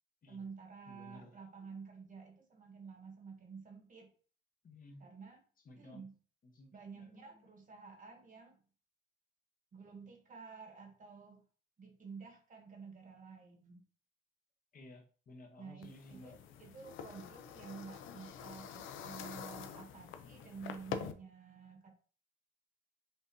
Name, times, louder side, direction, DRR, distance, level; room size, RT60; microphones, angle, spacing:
voice 1, 0.3-4.1 5.0-5.4 5.8-6.2 6.7-8.6 9.7-11.4 11.8-13.8 15.6-21.9, right 5 dB, 40° right, 4 dB, 1.2 m, -51 dB
voice 2, 0.9-1.3 4.6-5.0 5.7-6.0 6.4-7.3 14.7-16.3, left 1 dB, 45° left, 3 dB, 0.9 m, -55 dB
sound 1, 15.8-21.1, left 7 dB, 80° left, 0.5 m, -46 dB
5.6 x 2.7 x 2.6 m, 0.41 s
cardioid pair, 90°, 20 cm